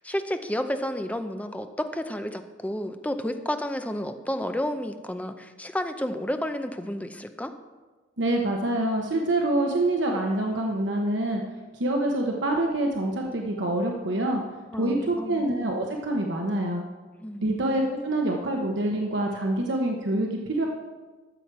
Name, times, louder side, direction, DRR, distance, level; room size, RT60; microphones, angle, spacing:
voice 1, 0.0-7.5 14.7-15.5 17.2-17.6, left 1 dB, 10° left, 8 dB, 0.6 m, -31 dB
voice 2, 8.2-11.4 11.7-14.4 14.8-16.8 17.4-20.7, right 1 dB, 70° right, 1 dB, 1.0 m, -26 dB
13.0 x 7.6 x 4.7 m, 1.3 s
head